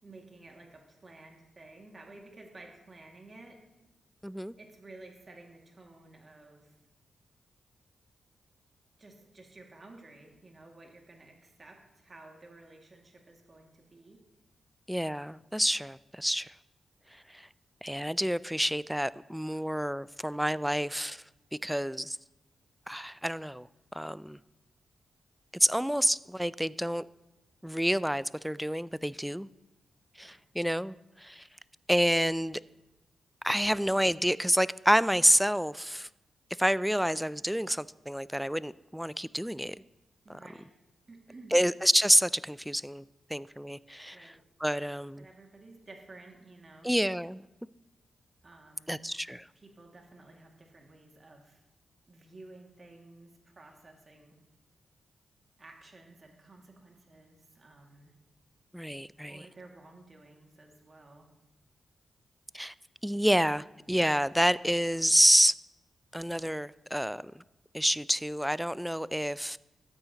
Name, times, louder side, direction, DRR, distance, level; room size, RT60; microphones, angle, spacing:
voice 1, 0.0-3.6 4.6-6.7 9.0-14.2 30.2-30.4 40.2-40.7 41.1-41.6 44.1-44.4 45.2-46.9 48.4-49.0 49.5-51.6 52.1-54.4 55.6-58.1 59.3-61.3, right 2 dB, 45° right, 2.1 m, -53 dB
voice 2, 4.2-4.5 14.9-16.5 17.3-17.5 17.8-21.2 21.6-22.2 22.9-23.7 23.9-24.4 25.5-27.1 27.6-29.5 30.2-31.5 31.9-32.6 33.4-36.1 36.6-39.8 40.3-40.4 41.5-43.0 43.3-44.3 44.6-45.2 46.8-47.4 48.9-49.5 58.7-59.4 62.5-62.7 63.0-65.5 66.1-67.3 67.7-69.6, equal, 5° right, 0.3 m, -28 dB
13.0 x 8.7 x 2.9 m
supercardioid pair, 45°, 0 cm